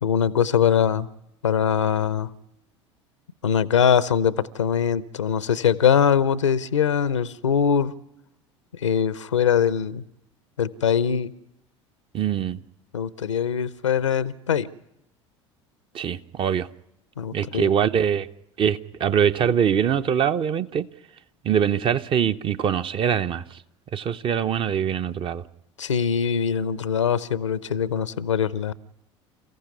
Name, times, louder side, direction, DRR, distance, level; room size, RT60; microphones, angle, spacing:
voice 1, 0.0-1.1 1.4-2.3 3.4-7.9 8.8-10.0 10.6-11.3 12.9-14.7 17.2-17.7 25.8-28.7, left 7 dB, 75° left, 0.8 m, -22 dB
voice 2, 12.1-12.6 15.9-16.7 17.3-18.3 18.6-20.9 21.4-23.6 23.9-25.4, right 8 dB, 35° right, 0.8 m, -23 dB
28.5 x 15.0 x 9.6 m
figure-of-eight pair, 70°, 16 cm